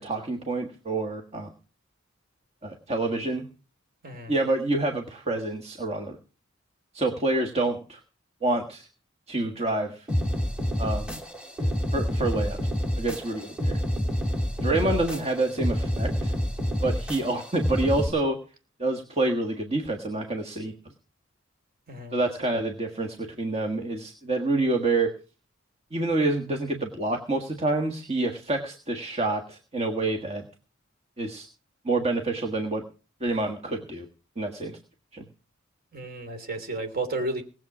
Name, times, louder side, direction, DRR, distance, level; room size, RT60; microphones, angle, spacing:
voice 1, 0.0-1.5 2.6-3.5 4.3-6.2 6.9-8.0 8.4-8.9 9.3-10.1 10.8-11.2 11.6-12.6 13.0-13.8 14.6-16.3 16.8-18.4 18.8-20.7 22.1-25.1 25.9-30.5 31.2-31.5 31.8-32.8 33.2-34.1 34.4-34.8 35.1-35.2, right 2 dB, 30° right, 3 dB, 1.5 m, -27 dB
voice 2, 4.0-4.3 14.8-15.1 21.9-22.2 35.9-37.4, right 2 dB, 50° right, 6 dB, 3.0 m, -32 dB
sound 1, 10.1-18.1, equal, 5° right, 2.7 m, -28 dB
19.5 x 7.6 x 6.0 m, 0.36 s
head